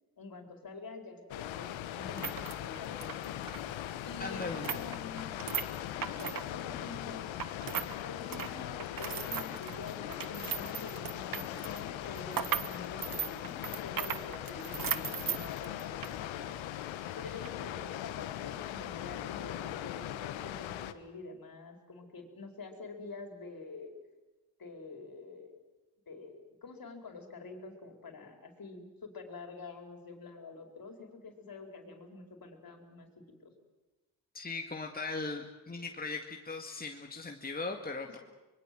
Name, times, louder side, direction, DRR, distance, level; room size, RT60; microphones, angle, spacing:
voice 1, 0.2-3.5 4.0-5.3 5.9-7.3 8.0-16.5 17.2-23.9 24.6-25.7 26.1-33.5 38.1-38.2, left 3 dB, 50° left, 5 dB, 4.7 m, -47 dB
Water, 1.3-20.9, left 12 dB, 85° left, 1.2 m, -40 dB
sound 1, 2.0-8.0 8.2-16.2 16.5-16.6 17.3-17.5, right 8 dB, 45° right, 1.4 m, -38 dB
voice 2, 4.2-4.7 34.3-38.2, left 3 dB, 20° left, 3 dB, 2.1 m, -39 dB
24.5 x 21.5 x 7.8 m, 1.2 s
supercardioid pair, 60°, 45 cm